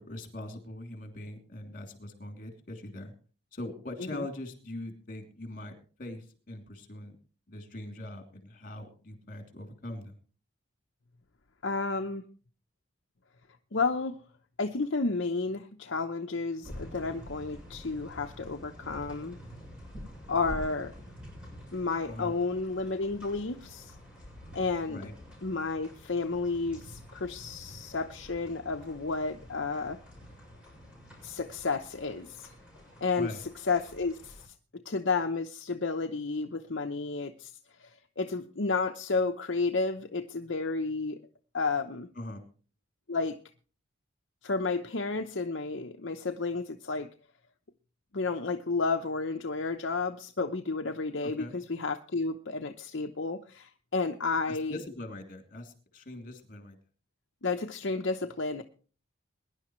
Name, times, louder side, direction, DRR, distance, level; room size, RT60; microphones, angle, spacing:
voice 1, 0.0-3.1 3.5-7.2 7.5-10.2 22.0-22.3 24.9-25.2 33.1-33.4 42.1-42.5 51.2-51.6 54.5-56.8, left 1 dB, 45° left, 5 dB, 2.9 m, -42 dB
voice 2, 11.6-12.2 13.7-14.2 14.6-19.4 20.3-20.9 21.7-23.9 24.5-25.0 25.4-30.0 31.2-32.5 33.0-33.3 33.7-37.5 37.8-41.2 41.5-42.1 43.1-43.4 44.4-47.1 48.1-54.8 57.4-58.6, left 3 dB, 65° left, 4 dB, 0.8 m, -31 dB
sound 1, 16.6-34.5, equal, 5° right, 6.7 m, -48 dB
21.5 x 11.0 x 3.1 m, 0.38 s
head